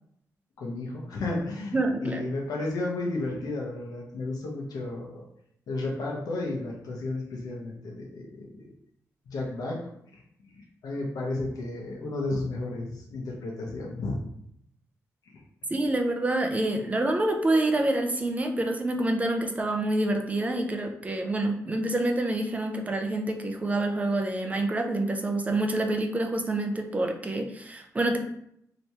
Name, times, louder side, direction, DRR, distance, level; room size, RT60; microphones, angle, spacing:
voice 1, 0.6-1.7 2.0-5.2 5.7-8.7 9.3-9.8 10.5-14.2 15.3-15.4, left 2 dB, 85° left, -2 dB, 0.9 m, -33 dB
voice 2, 1.7-2.2 15.7-28.2, right 2 dB, 25° right, 4 dB, 0.5 m, -27 dB
3.3 x 2.9 x 2.8 m, 0.72 s
cardioid pair, 105°, 6 cm